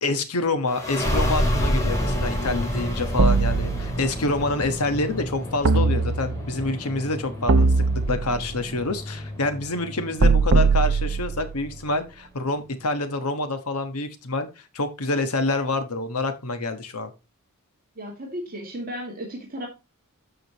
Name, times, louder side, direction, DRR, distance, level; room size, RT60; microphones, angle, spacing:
voice 1, 0.0-14.5 14.7-17.1, left 2 dB, 90° left, 9 dB, 1.3 m, -27 dB
sound 1, 0.7-11.9, equal, 15° left, 2.4 m, -29 dB
sound 2, 3.2-4.3 5.6-6.6 7.5-8.6 10.2-11.6, right 4 dB, 65° right, 0.8 m, -21 dB
voice 2, 18.0-19.7, equal, 40° right, 0 dB, 2.1 m, -34 dB
13.0 x 5.1 x 3.0 m, 0.26 s
head